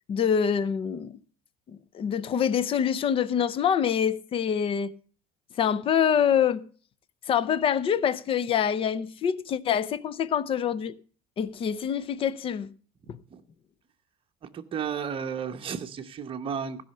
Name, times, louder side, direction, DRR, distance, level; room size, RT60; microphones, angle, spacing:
voice 1, 0.1-1.2 1.7-4.9 5.6-6.6 7.3-11.0 11.4-12.7 13.1-13.2, left 8 dB, 25° left, 0.5 m, -25 dB
voice 2, 13.0-13.4 14.4-16.8, right 7 dB, 25° right, 0.9 m, -33 dB
15.5 x 5.6 x 6.5 m
cardioid pair, 165°, 21 cm